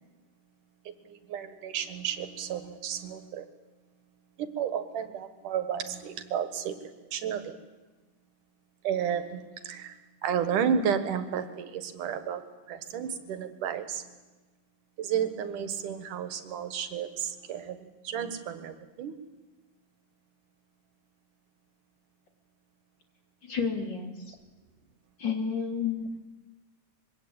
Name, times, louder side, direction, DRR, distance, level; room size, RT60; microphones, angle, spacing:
voice 1, 0.9-3.5 4.4-7.6 8.8-10.0 10.2-14.1 15.0-19.2, right 8 dB, 85° right, 10 dB, 3.1 m, -32 dB
voice 2, 23.4-24.4 25.2-26.2, left 6 dB, 35° left, 3 dB, 3.7 m, -31 dB
25.5 x 22.5 x 8.9 m, 1.2 s
omnidirectional pair, 3.6 m